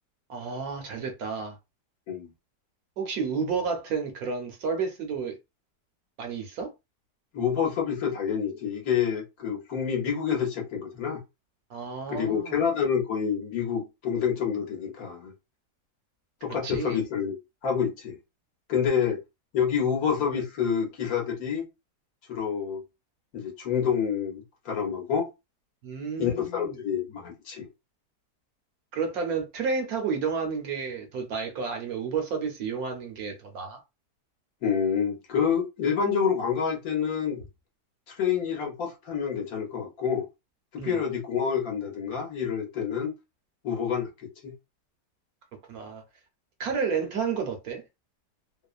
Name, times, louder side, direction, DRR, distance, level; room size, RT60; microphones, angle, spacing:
voice 1, 0.3-1.6 3.0-5.4 6.2-6.7 11.7-12.6 16.6-17.0 25.8-26.8 28.9-33.8 40.8-41.0 45.7-46.0 46.6-47.8, right 5 dB, 65° right, 1.0 m, -31 dB
voice 2, 7.3-11.2 12.1-15.3 16.4-17.4 17.6-18.2 18.7-19.2 19.5-21.6 22.3-22.8 23.3-25.3 26.2-27.7 34.6-37.4 38.1-40.2 40.7-43.1 43.6-44.5, left 7 dB, 65° left, 1.1 m, -28 dB
3.0 x 2.0 x 2.4 m
omnidirectional pair, 1.8 m